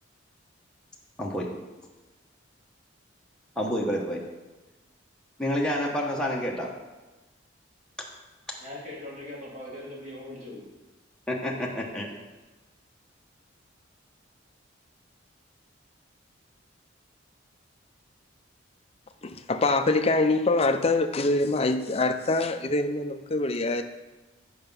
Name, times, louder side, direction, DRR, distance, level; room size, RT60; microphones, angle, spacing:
voice 1, 1.2-1.5 3.6-4.2 5.4-6.7 11.3-12.1, equal, 5° left, -3 dB, 0.9 m, -28 dB
voice 2, 8.6-10.6, left 1 dB, 40° right, -6 dB, 2.9 m, -40 dB
voice 3, 19.2-23.8, left 2 dB, 30° left, 8 dB, 0.5 m, -24 dB
7.7 x 5.7 x 5.4 m, 1.1 s
head